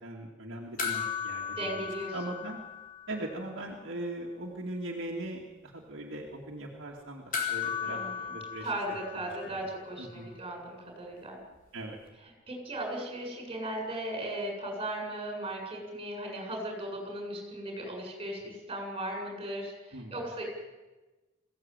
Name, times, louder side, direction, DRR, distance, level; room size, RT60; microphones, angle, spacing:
voice 1, 0.0-1.8 2.1-2.6 3.1-8.0 8.3-8.7 9.5-9.6 10.0-10.3 11.7-12.0 19.9-20.2, right 1 dB, 60° right, -2 dB, 2.5 m, -40 dB
sound 1, 0.8-3.5 3.7-3.8 7.3-9.9 12.1-12.2, left 7 dB, 40° left, 4.2 m, -36 dB
voice 2, 1.5-2.2 7.8-8.4 8.6-11.4 12.5-20.4, right 1 dB, 25° right, 2 dB, 7.3 m, -37 dB
22.5 x 16.0 x 9.1 m, 1.2 s
head